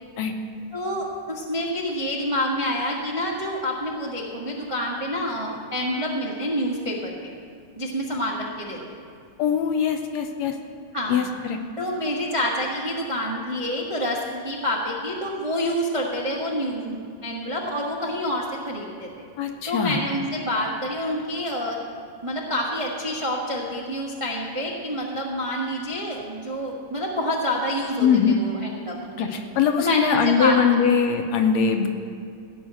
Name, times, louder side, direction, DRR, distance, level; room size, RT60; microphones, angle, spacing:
voice 1, 0.7-7.3 7.8-8.8 10.9-11.2 11.8-14.2 14.4-19.3 19.7-21.8 22.2-29.4 29.8-30.6, equal, 35° right, -3 dB, 0.4 m, -27 dB
voice 2, 9.4-10.6 11.1-11.6 19.4-20.0 28.0-28.4 29.2-31.9, left 7 dB, 75° left, 5 dB, 1.8 m, -21 dB
16.5 x 5.5 x 8.8 m, 2.4 s
omnidirectional pair, 3.4 m